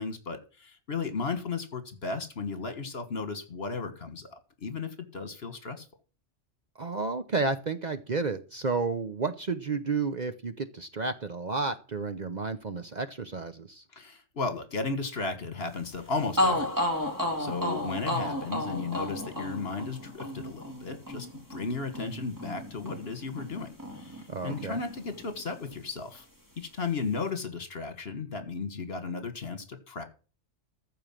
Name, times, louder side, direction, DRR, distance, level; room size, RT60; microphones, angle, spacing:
voice 1, 0.0-5.9 13.9-16.9 17.4-26.3 26.6-30.0, left 4 dB, 55° left, 9 dB, 1.8 m, -35 dB
voice 2, 6.8-13.8 24.3-24.8, right 4 dB, 40° right, 10 dB, 0.8 m, -31 dB
sound 1, 16.0-16.1 16.4-24.2 24.5-25.6, left 1 dB, 15° right, 2.2 m, -32 dB
14.0 x 5.0 x 7.4 m, 0.36 s
omnidirectional pair, 1.3 m